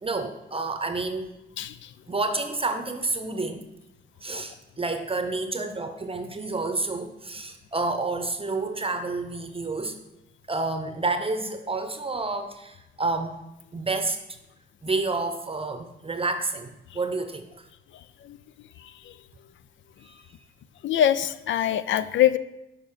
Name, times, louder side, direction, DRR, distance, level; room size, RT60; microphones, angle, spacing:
voice 1, 0.0-1.3 2.1-3.7 4.2-10.0 10.5-13.4 13.7-14.2 14.8-17.5 20.0-20.1, right 3 dB, 30° right, 7 dB, 0.7 m, -29 dB
voice 2, 1.6-1.9 18.2-18.4 20.8-22.4, left 11 dB, 70° left, 15 dB, 0.4 m, -23 dB
6.6 x 5.1 x 5.5 m, 0.90 s
cardioid pair, 65°, 20 cm